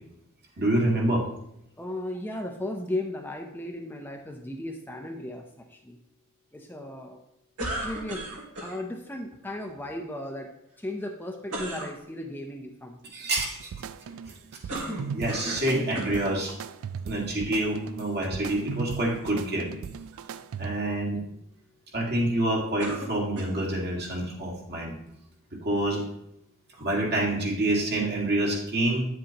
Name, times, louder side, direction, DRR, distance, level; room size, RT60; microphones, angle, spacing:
voice 1, 0.6-1.3 13.1-13.7 15.1-16.5 17.0-19.7 20.6-21.2 21.9-24.9 25.6-26.0 26.8-29.1, right 1 dB, 50° right, -1 dB, 2.0 m, -27 dB
voice 2, 1.8-6.0 6.5-7.2 7.8-8.3 8.6-10.5 10.8-13.0 14.6-14.7, left 1 dB, 10° left, 2 dB, 0.6 m, -36 dB
sound 1, 7.6-8.8 11.5-11.9 14.7-15.7 15.9-16.3 17.1-17.2 22.8-23.7, right 1 dB, 85° right, 2.7 m, -34 dB
sound 2, 13.4-21.0, right 6 dB, 65° right, 0.3 m, -38 dB
9.2 x 7.8 x 2.9 m, 0.81 s
head